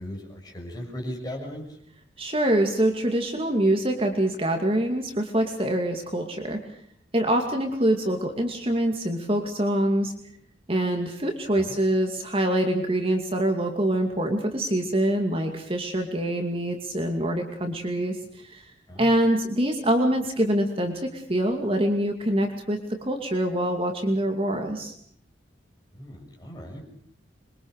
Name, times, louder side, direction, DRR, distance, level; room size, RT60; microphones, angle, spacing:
voice 1, 0.0-1.6 11.6-11.7 18.9-19.1 25.9-26.8, equal, 20° left, 0 dB, 6.7 m, -37 dB
voice 2, 2.2-6.6 7.1-10.1 10.7-18.7 19.0-24.9, right 1 dB, 30° right, 3 dB, 2.5 m, -25 dB
26.0 x 23.0 x 6.6 m, 0.62 s
head